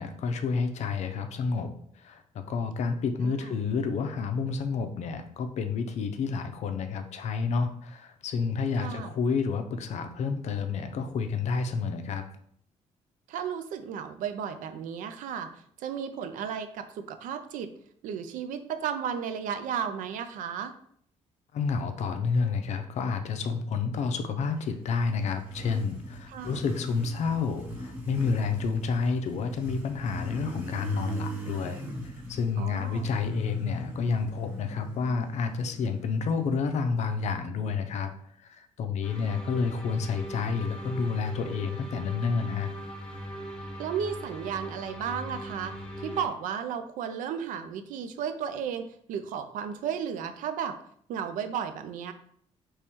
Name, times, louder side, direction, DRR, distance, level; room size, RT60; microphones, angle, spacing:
voice 1, 0.0-1.7 2.0-2.2 2.5-12.3 21.5-31.8 32.3-38.1 38.4-42.7, left 5 dB, 60° left, 7 dB, 0.5 m, -29 dB
voice 2, 3.2-3.6 8.8-9.1 13.3-17.7 18.0-20.7 26.3-26.6 32.6-33.1 43.8-50.8 51.1-52.1, right 7 dB, 85° right, 9 dB, 0.4 m, -34 dB
Motorcycle, 24.6-37.3, right 1 dB, 15° right, 0.8 m, -39 dB
sound 1, 39.0-46.3, equal, 10° left, 1.2 m, -40 dB
3.5 x 3.0 x 2.9 m, 0.64 s
cardioid pair, 115°, 13 cm